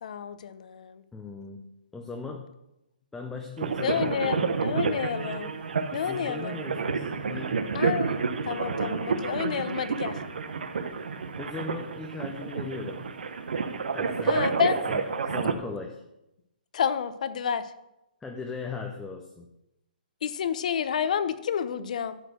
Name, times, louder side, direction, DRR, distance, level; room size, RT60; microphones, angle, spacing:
voice 1, 0.0-1.0 3.8-5.6 5.9-6.6 7.7-8.2 8.4-10.2 14.3-14.8 16.7-17.7 20.2-22.2, left 8 dB, 50° left, 14 dB, 0.8 m, -29 dB
voice 2, 1.1-1.7 1.9-2.5 3.1-4.6 5.9-7.7 11.4-13.0 13.9-14.5 14.9-16.0 18.2-19.5, left 3 dB, 5° left, 2 dB, 0.5 m, -38 dB
sound 1, 3.6-15.5, right 5 dB, 75° right, 1.2 m, -30 dB
12.0 x 4.9 x 6.4 m, 0.90 s
hypercardioid pair, 165°, 5 cm